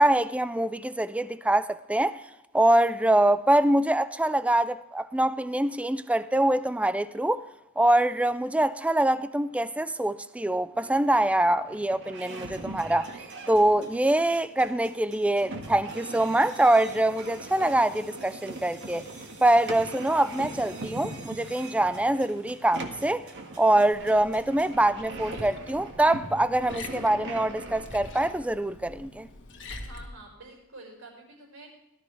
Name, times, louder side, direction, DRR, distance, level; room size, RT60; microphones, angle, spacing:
voice 1, 0.0-2.2 2.5-7.4 7.8-13.1 13.5-19.1 19.4-23.3 23.6-29.3, right 1 dB, 5° right, 0.4 m, -24 dB
sound 1, 10.7-28.3, right 2 dB, 55° right, 1.7 m, -42 dB
sound 2, 12.5-24.7, right 3 dB, 90° right, 4.6 m, -52 dB
Liquid, 23.9-30.1, left 2 dB, 60° left, 1.6 m, -45 dB
voice 2, 29.9-31.7, right 2 dB, 70° right, 5.2 m, -47 dB
18.0 x 12.5 x 3.3 m
head